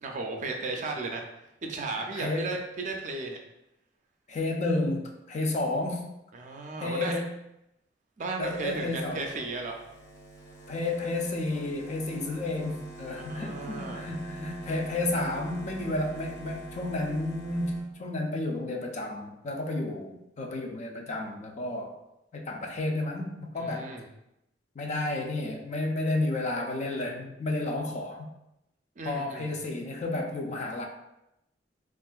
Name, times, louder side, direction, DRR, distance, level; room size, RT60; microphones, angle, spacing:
voice 1, 0.0-1.2 1.6-3.4 6.3-7.2 8.2-9.8 13.1-14.1 23.6-24.1 29.0-29.5, right 3 dB, 40° right, 2 dB, 0.4 m, -35 dB
voice 2, 2.1-2.6 4.3-6.1 6.8-7.3 8.4-9.2 10.7-22.0 22.3-23.9 24.8-28.3 29.0-30.9, left 2 dB, 40° left, 1 dB, 0.4 m, -31 dB
sound 1, 8.4-17.8, right 2 dB, 80° left, 1.3 m, -45 dB
3.5 x 2.4 x 2.3 m, 0.85 s
head